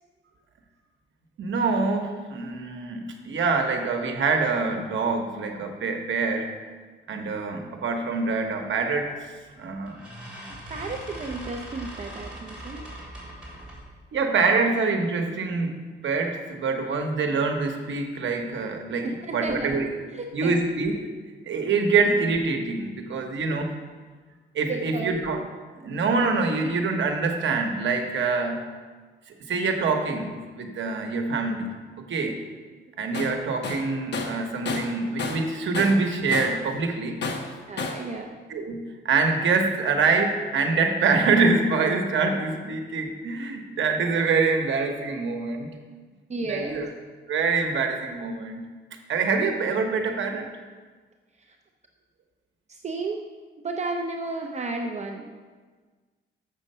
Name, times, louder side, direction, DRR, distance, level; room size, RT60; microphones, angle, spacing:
voice 1, 1.4-6.5 7.1-9.1 9.6-10.0 14.1-19.9 20.3-20.9 21.5-23.7 24.5-25.4 25.8-28.7 29.5-31.7 32.1-32.4 33.0-37.2 38.5-45.7 46.4-46.8 47.3-48.7 49.1-50.5, right 4 dB, 75° right, 4 dB, 1.1 m, -25 dB
sound 1, 9.1-9.4 9.9-13.9, right 1 dB, 5° right, 2.9 m, -40 dB
voice 2, 10.7-12.8 19.0-19.8 20.1-20.6 24.7-25.2 32.2-32.4 37.5-38.4 45.4-45.7 46.3-46.9 51.5-51.6 52.7-53.2 53.6-55.4, right 3 dB, 35° right, 3 dB, 0.5 m, -33 dB
Tools, 33.1-33.4 33.6-35.5 35.7-36.7 37.2-38.1, left 3 dB, 60° left, 0.9 m, -31 dB
7.3 x 6.4 x 5.5 m, 1.4 s
wide cardioid pair, 150°, 20 cm